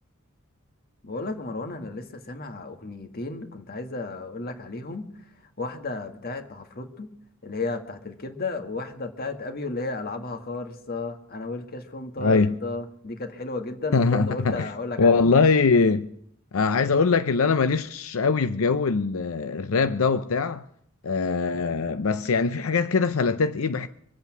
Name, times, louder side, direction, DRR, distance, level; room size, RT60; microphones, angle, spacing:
voice 1, 1.0-5.0 5.6-7.1 7.4-15.2, left 3 dB, 45° left, 1.8 m, -33 dB
voice 2, 12.2-12.5 13.9-14.7 15.0-16.1 16.5-20.6 21.0-23.9, left 4 dB, 85° left, 0.6 m, -22 dB
25.0 x 8.3 x 6.1 m
head